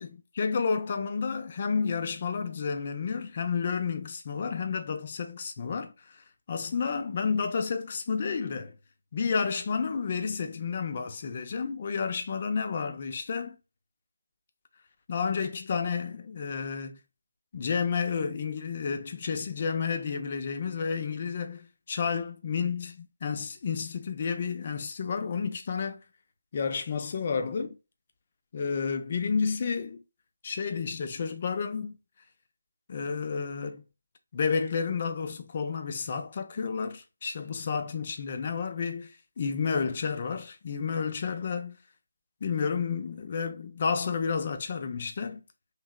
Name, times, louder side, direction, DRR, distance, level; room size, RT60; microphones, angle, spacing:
voice 1, 0.4-6.2 6.5-8.7 9.1-13.6 15.1-17.0 17.5-26.0 26.5-27.8 28.5-30.0 30.4-32.0 32.9-33.8 34.3-41.8 42.4-45.4, left 5 dB, 35° left, 0.5 m, -31 dB
3.3 x 2.7 x 2.3 m
figure-of-eight pair, 155°, 0 cm